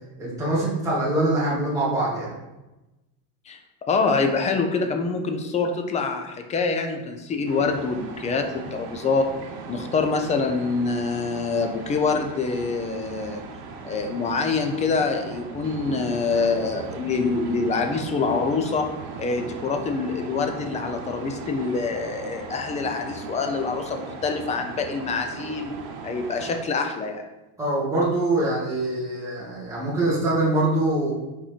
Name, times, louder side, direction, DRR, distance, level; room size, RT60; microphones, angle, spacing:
voice 1, 0.2-2.3 27.6-31.1, right 2 dB, 5° right, -8 dB, 2.0 m, -24 dB
voice 2, 3.9-9.3 9.7-13.4 13.8-18.9 19.2-25.7 26.0-27.2, left 4 dB, 15° left, 5 dB, 0.3 m, -25 dB
sound 1, 7.5-26.6, right 4 dB, 85° right, 1.0 m, -38 dB
5.1 x 4.3 x 5.0 m, 1.0 s
supercardioid pair, 140°, 46 cm